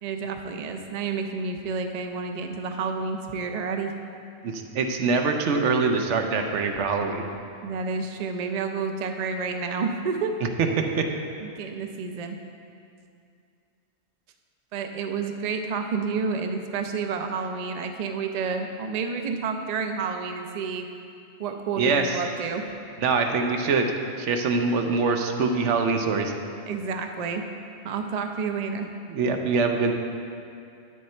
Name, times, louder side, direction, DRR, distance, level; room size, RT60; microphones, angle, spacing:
voice 1, 0.0-3.9 7.6-10.3 11.4-12.4 14.7-20.9 21.4-22.7 26.7-27.4 27.8-28.9, right 5 dB, 50° right, 5 dB, 0.5 m, -30 dB
voice 2, 4.4-7.2 11.0-11.1 21.8-22.2 23.0-23.9 24.2-26.3 29.1-29.9, right 4 dB, 80° right, 4 dB, 1.0 m, -24 dB
8.9 x 6.5 x 4.3 m, 2.5 s
omnidirectional pair, 1.2 m